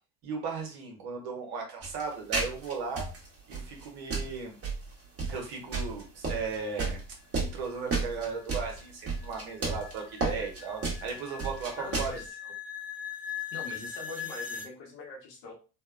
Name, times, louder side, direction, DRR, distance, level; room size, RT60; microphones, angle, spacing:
voice 1, 0.2-3.1 3.5-4.6 5.3-7.0 7.3-12.1, right 5 dB, 65° right, 1 dB, 1.1 m, -36 dB
sound 1, 1.8-12.3, right 3 dB, 30° right, 1.2 m, -33 dB
sound 2, 7.5-14.7, left 7 dB, 5° right, 0.3 m, -41 dB
voice 2, 11.8-12.3 13.5-15.5, left 3 dB, 65° left, -1 dB, 1.2 m, -42 dB
2.8 x 2.1 x 2.4 m, 0.34 s
hypercardioid pair, 70°, 46 cm